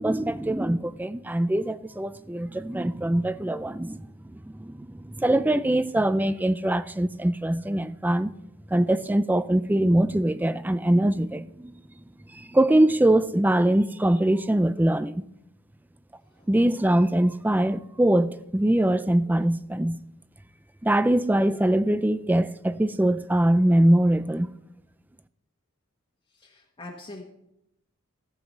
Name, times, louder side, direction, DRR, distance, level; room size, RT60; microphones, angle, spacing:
voice 1, 0.0-8.3 8.7-11.7 12.3-15.2 16.5-20.0 20.8-24.5, right 1 dB, 10° right, 0.3 m, -23 dB
voice 2, 26.4-27.2, left 2 dB, 25° left, 1.3 m, -42 dB
15.5 x 8.0 x 4.1 m
head